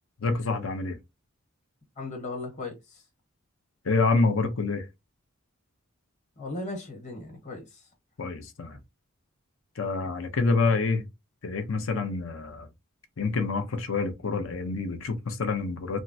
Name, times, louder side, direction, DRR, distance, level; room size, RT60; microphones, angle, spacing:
voice 1, 0.2-1.0 3.8-4.9 8.2-8.8 9.8-11.0 11.4-12.7 13.2-16.0, left 3 dB, 65° left, 0.6 m, -27 dB
voice 2, 2.0-3.0 6.4-7.6, left 2 dB, 35° left, 1.2 m, -37 dB
3.5 x 2.1 x 2.6 m
head